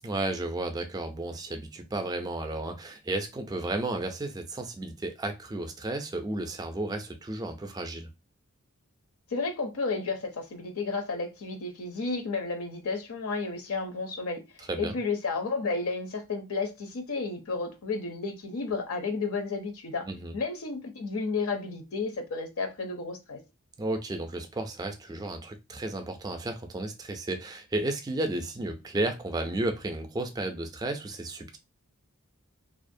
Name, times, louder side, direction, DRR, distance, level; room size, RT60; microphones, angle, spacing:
voice 1, 0.0-8.1 14.7-15.0 20.1-20.3 23.8-31.6, right 2 dB, 20° right, 0.3 m, -33 dB
voice 2, 9.3-14.4 14.8-20.0 20.3-23.4, left 4 dB, 70° left, 0.6 m, -32 dB
2.4 x 2.0 x 2.6 m
head